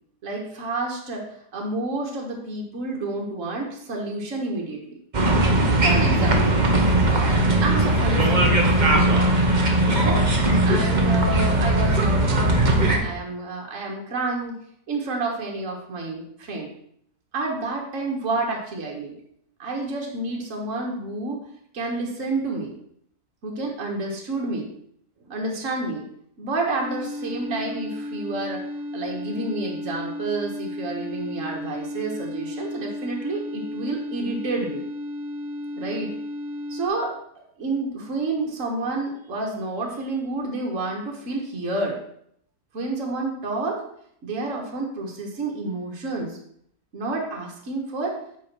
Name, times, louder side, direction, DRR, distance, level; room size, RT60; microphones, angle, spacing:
voice 1, 0.2-1.3 1.5-5.0 5.8-6.6 7.1-9.5 9.9-10.2 10.6-14.6 14.9-16.7 17.3-19.2 19.6-21.4 21.7-22.8 23.4-24.7 25.2-26.0 26.4-28.7 28.9-34.9 35.8-36.1 36.7-42.0 42.7-43.8 44.2-46.4 46.9-48.2, right 2 dB, 55° right, 0 dB, 1.8 m, -29 dB
sound 1, 5.1-13.0, right 1 dB, 30° right, 1.1 m, -19 dB
sound 2, 26.8-36.9, left 1 dB, 10° right, 1.7 m, -33 dB
8.4 x 3.9 x 6.0 m, 0.68 s
omnidirectional pair, 1.7 m